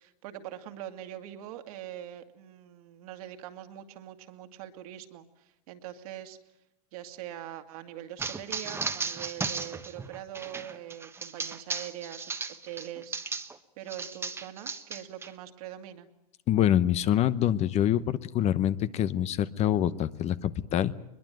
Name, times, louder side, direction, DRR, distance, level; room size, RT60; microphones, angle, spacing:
voice 1, 0.0-6.4 6.9-12.3 12.6-13.2 13.8-16.1, right 12 dB, 65° right, 7 dB, 2.2 m, -43 dB
sound 1, 8.2-13.6 13.9-15.3, right 4 dB, 10° right, 1.2 m, -35 dB
voice 2, 16.5-20.9, left 11 dB, 30° left, 15 dB, 0.9 m, -25 dB
22.0 x 21.5 x 9.2 m, 0.90 s
hypercardioid pair, 125°, 21 cm